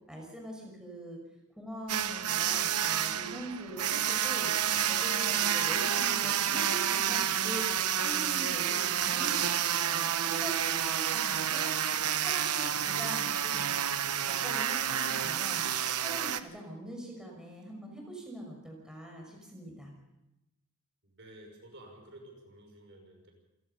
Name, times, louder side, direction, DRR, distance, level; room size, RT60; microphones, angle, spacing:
voice 1, 0.1-1.2 1.6-4.5 4.9-9.4 9.7-11.7 12.1-13.7 14.2-15.7 16.0-19.9, right 1 dB, 5° right, 0 dB, 5.7 m, -43 dB
sound 1, 1.9-16.4, right 9 dB, 90° right, 1.0 m, -29 dB
voice 2, 21.1-23.3, right 1 dB, 55° right, 3 dB, 5.7 m, -52 dB
28.0 x 17.0 x 5.6 m, 0.90 s
head